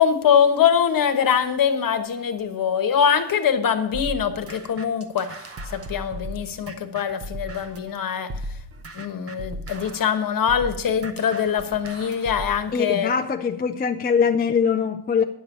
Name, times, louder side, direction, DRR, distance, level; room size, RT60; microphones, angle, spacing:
voice 1, 0.0-8.3 8.9-13.1, left 8 dB, 55° left, 8 dB, 1.2 m, -23 dB
sound 1, 3.9-7.9 8.3-12.7, right 1 dB, 35° right, 0.9 m, -37 dB
voice 2, 12.7-15.2, left 6 dB, 25° left, 6 dB, 0.4 m, -22 dB
10.5 x 6.9 x 7.2 m, 0.71 s
wide cardioid pair, 170°, 41 cm